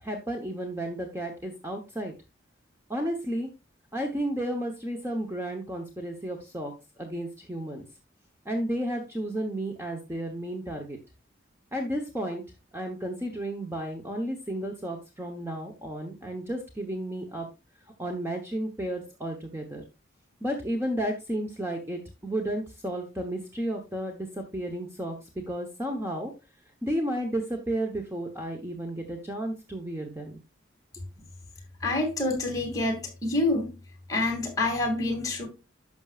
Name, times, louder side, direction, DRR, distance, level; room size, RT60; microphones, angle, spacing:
voice 1, 0.0-2.1 2.9-3.5 3.9-6.7 7.0-7.8 8.4-11.0 11.7-12.4 12.7-17.5 18.0-19.8 20.4-26.3 26.8-30.4, right 1 dB, 15° right, 1.0 m, -32 dB
voice 2, 31.8-33.7 34.1-35.5, left 2 dB, 15° left, 2.4 m, -27 dB
11.5 x 6.2 x 2.4 m
head